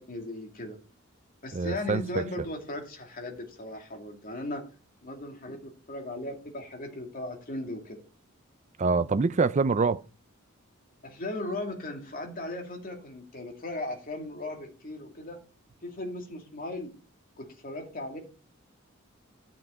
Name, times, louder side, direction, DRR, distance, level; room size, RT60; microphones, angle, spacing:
voice 1, 0.1-0.8 1.4-4.7 5.0-8.0 11.0-15.4 15.8-16.9 17.4-18.2, left 2 dB, 45° left, 2.4 m, -37 dB
voice 2, 1.5-2.2 8.8-10.0, right 4 dB, 35° right, 0.5 m, -25 dB
11.5 x 6.0 x 4.3 m
head